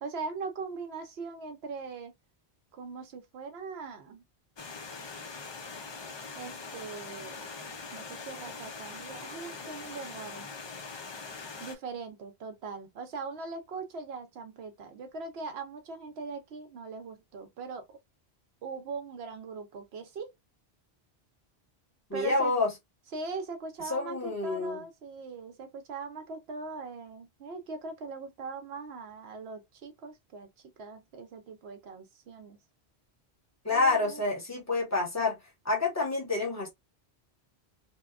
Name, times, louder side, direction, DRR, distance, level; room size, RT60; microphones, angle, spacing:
voice 1, 0.0-2.1 2.7-4.2 6.4-7.5 7.9-10.5 11.6-18.0 18.6-20.3 22.1-22.5 23.1-30.5 30.8-32.6 33.7-34.2, right 4 dB, 75° right, 0.9 m, -40 dB
Stream, 4.6-11.7, left 4 dB, 50° left, 0.3 m, -42 dB
voice 2, 22.1-22.7 23.8-24.8 33.6-35.4 35.6-36.7, left 3 dB, 15° left, 1.0 m, -28 dB
2.8 x 2.2 x 2.3 m
omnidirectional pair, 1.1 m